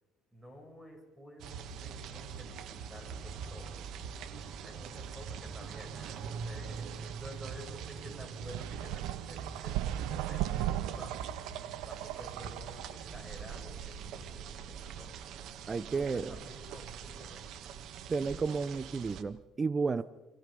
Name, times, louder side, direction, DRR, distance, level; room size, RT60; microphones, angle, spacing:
voice 1, 0.3-3.8 4.6-11.2 11.9-15.2 15.9-17.7, equal, 10° right, 3 dB, 7.8 m, -51 dB
sound 1, 1.4-19.2, right 6 dB, 65° right, 1.8 m, -43 dB
sound 2, 8.5-13.0, right 13 dB, 90° right, 0.8 m, -37 dB
voice 2, 15.7-16.4 18.1-20.0, right 4 dB, 25° right, 15 dB, 0.7 m, -32 dB
28.5 x 26.5 x 5.4 m, 1.1 s
cardioid pair, 115°, 0 cm